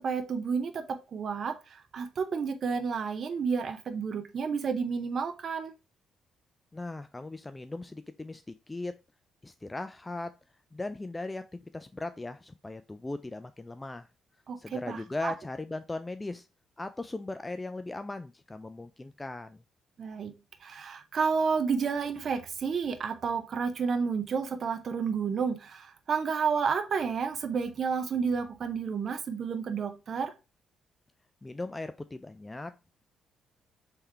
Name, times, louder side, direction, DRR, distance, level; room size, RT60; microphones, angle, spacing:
voice 1, 0.0-5.7 14.5-15.3 20.0-20.3 20.6-30.3, right 5 dB, 50° right, 0.6 m, -31 dB
voice 2, 6.7-9.0 9.4-10.3 10.7-14.1 14.6-16.5 16.8-19.6 31.4-32.8, left 2 dB, 15° left, 0.3 m, -38 dB
3.6 x 3.4 x 4.4 m
cardioid pair, 90°, 0 cm